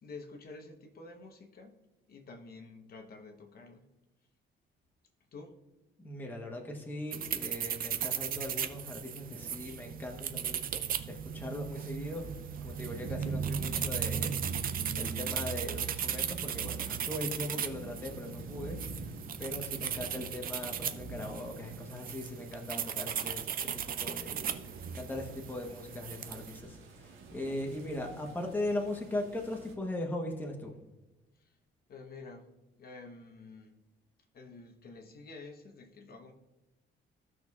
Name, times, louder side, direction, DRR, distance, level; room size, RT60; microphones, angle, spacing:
voice 1, 0.0-1.8 2.1-3.9 5.3-5.6 12.9-13.4 19.8-20.4 27.4-27.7 31.3-31.6 31.9-32.5 32.8-33.8 34.3-36.3, left 3 dB, 45° left, 4 dB, 0.9 m, -50 dB
voice 2, 6.0-12.3 12.6-14.4 14.9-18.8 19.4-24.4 24.9-30.7, left 1 dB, 10° left, 1 dB, 0.9 m, -39 dB
sound 1, 7.1-26.6, right 8 dB, 45° right, 0.5 m, -37 dB
sound 2, 12.0-29.7, right 3 dB, 75° right, 1.4 m, -47 dB
16.0 x 6.2 x 2.3 m, 1.0 s
cardioid pair, 180°, 21 cm